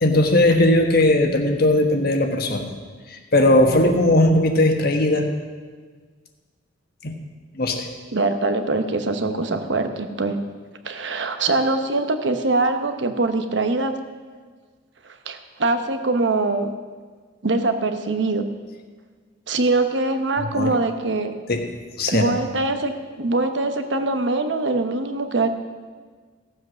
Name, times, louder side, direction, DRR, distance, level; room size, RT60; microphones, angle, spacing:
voice 1, 0.0-2.7 3.1-5.3 7.0-7.2 7.5-7.9 20.5-20.7 21.5-21.6 22.0-22.4, left 1 dB, 55° left, 4 dB, 1.4 m, -18 dB
voice 2, 8.1-10.4 10.8-13.9 15.2-16.7 17.4-18.4 19.5-21.3 22.1-22.9 23.2-25.5, right 2 dB, 70° right, 7 dB, 1.0 m, -23 dB
15.5 x 7.9 x 6.3 m, 1.5 s
head